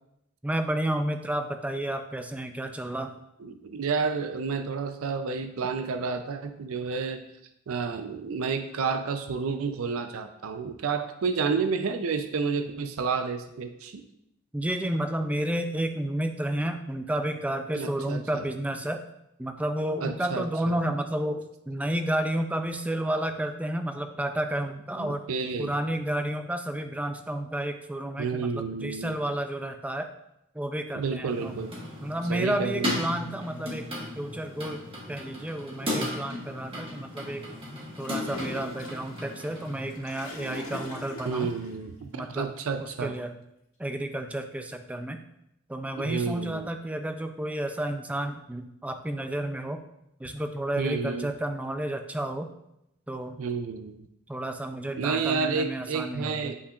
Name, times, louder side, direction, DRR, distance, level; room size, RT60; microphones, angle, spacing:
voice 1, 0.4-3.1 14.5-19.0 19.4-25.2 25.6-30.1 30.5-31.5 32.0-33.9 34.1-37.5 38.0-41.5 42.1-42.5 42.8-43.4 43.8-45.2 45.7-49.8 50.2-52.5 53.1-53.4 54.3-56.5, right 1 dB, 5° right, 7 dB, 0.3 m, -31 dB
voice 2, 3.4-7.2 7.7-14.0 17.7-18.4 20.0-20.8 25.0-25.7 28.2-29.2 30.9-31.7 32.3-33.0 41.2-43.1 45.9-46.7 50.8-51.3 53.4-54.0 55.0-56.5, right 5 dB, 70° right, 8 dB, 0.4 m, -30 dB
sound 1, 31.3-40.0, left 1 dB, 25° right, 1.4 m, -36 dB
Gurgling / Toilet flush, 38.0-41.7, equal, 75° left, 1.6 m, -41 dB
8.1 x 5.6 x 2.4 m, 0.82 s
head